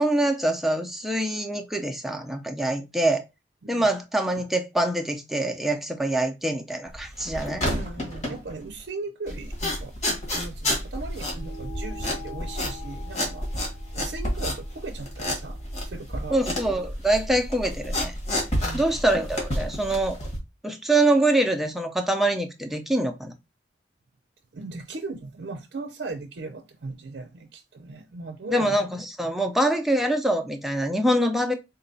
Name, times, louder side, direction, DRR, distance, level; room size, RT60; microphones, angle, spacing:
voice 1, 0.0-3.2 3.7-7.6 16.3-18.1 18.7-20.2 20.6-23.3 28.5-31.5, right 1 dB, ahead, 0.4 m, -24 dB
sound 1, 6.9-8.8 9.3-20.4, left 1 dB, 40° left, 1.4 m, -30 dB
voice 2, 7.7-16.5 18.6-19.1 24.5-28.8, right 3 dB, 70° right, 0.5 m, -38 dB
sound 2, 11.3-16.1, left 2 dB, 70° left, 1.8 m, -45 dB
3.9 x 2.2 x 3.9 m
head